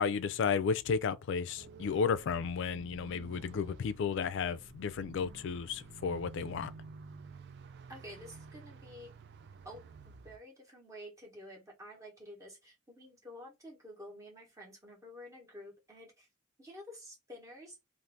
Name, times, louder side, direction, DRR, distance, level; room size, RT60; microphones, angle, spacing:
voice 1, 0.0-6.7, left 6 dB, 60° left, 0.3 m, -33 dB
sound 1, 1.6-10.4, right 5 dB, 55° right, 0.3 m, -52 dB
voice 2, 7.9-9.2 9.6-16.3 16.6-17.8, left 1 dB, 15° right, 1.0 m, -50 dB
2.6 x 2.5 x 3.3 m
head